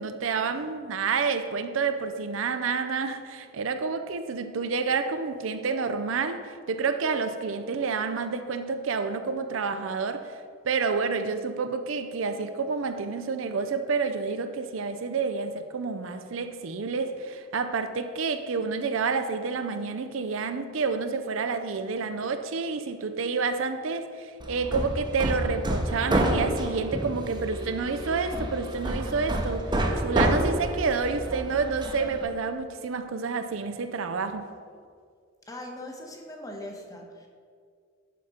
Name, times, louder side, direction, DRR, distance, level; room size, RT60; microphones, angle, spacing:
voice 1, 0.0-10.4 10.6-34.4, right 4 dB, 75° right, 0.5 m, -29 dB
Hammer, 24.4-32.2, right 1 dB, 25° right, 0.8 m, -29 dB
voice 2, 35.5-37.3, left 1 dB, 15° left, 1.1 m, -40 dB
11.0 x 4.3 x 4.9 m
head